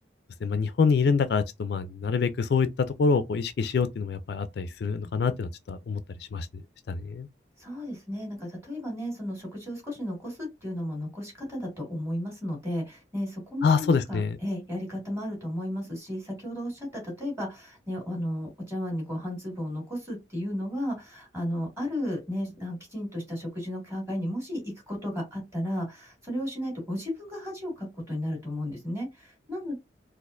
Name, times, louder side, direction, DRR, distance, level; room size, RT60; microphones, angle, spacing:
voice 1, 0.4-6.5 6.9-7.3 13.6-14.4, left 5 dB, 60° left, 0.3 m, -26 dB
voice 2, 7.6-29.8, equal, 15° right, 1.9 m, -34 dB
4.1 x 2.5 x 2.5 m
head